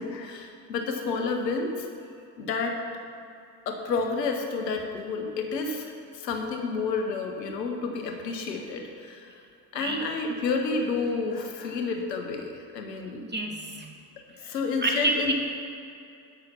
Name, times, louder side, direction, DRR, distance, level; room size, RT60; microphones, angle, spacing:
voice 1, 0.0-1.9 2.4-2.8 3.7-9.4 9.7-13.2 14.4-15.3, left 4 dB, 90° left, 3 dB, 0.9 m, -30 dB
voice 2, 9.7-10.1 13.2-13.9 14.4-15.3, right 2 dB, 20° right, 1 dB, 2.1 m, -29 dB
13.0 x 5.7 x 5.6 m, 2.6 s
hypercardioid pair, 45°, 48 cm